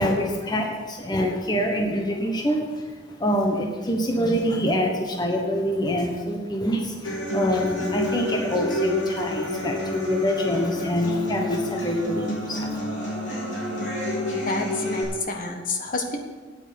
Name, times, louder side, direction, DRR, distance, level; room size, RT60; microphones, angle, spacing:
voice 1, 0.0-12.8, equal, 25° left, 1 dB, 1.2 m, -25 dB
Human voice / Acoustic guitar, 7.0-15.0, left 1 dB, 80° left, 4.1 m, -29 dB
voice 2, 14.5-16.2, left 3 dB, 50° left, 4 dB, 1.4 m, -29 dB
9.1 x 8.9 x 7.9 m, 1.5 s
head